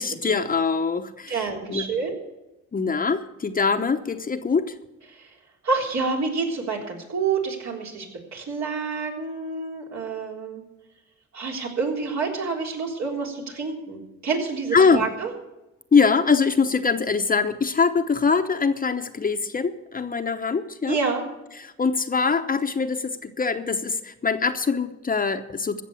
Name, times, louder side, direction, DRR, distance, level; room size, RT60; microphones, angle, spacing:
voice 1, 0.0-1.4 1.7-1.9 2.7-4.7 14.7-15.1 15.9-21.0 21.6-25.8, left 5 dB, 30° left, 8 dB, 0.9 m, -23 dB
voice 2, 1.3-2.2 5.1-5.3 5.6-8.1 8.3-10.6 11.3-15.3 20.9-21.2, right 4 dB, 65° right, 0 dB, 3.7 m, -28 dB
15.5 x 6.8 x 8.2 m, 0.96 s
cardioid pair, 90°, 30 cm